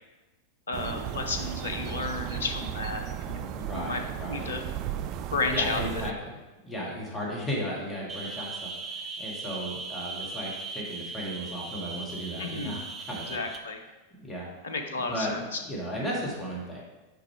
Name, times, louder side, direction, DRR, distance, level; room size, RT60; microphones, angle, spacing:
voice 1, 0.7-4.0 4.3-4.6 5.3-6.1 12.4-12.8 13.3-13.8 14.6-15.6, left 3 dB, 65° left, 5 dB, 0.7 m, -32 dB
sound 1, 0.7-6.1, right 10 dB, 40° right, 0.3 m, -35 dB
voice 2, 3.6-4.5 5.5-13.4 14.1-16.8, equal, 15° left, -4 dB, 1.8 m, -35 dB
sound 2, 8.1-13.6, right 4 dB, 25° right, 0.7 m, -38 dB
5.2 x 4.8 x 4.6 m, 1.1 s
figure-of-eight pair, 90°, 0 cm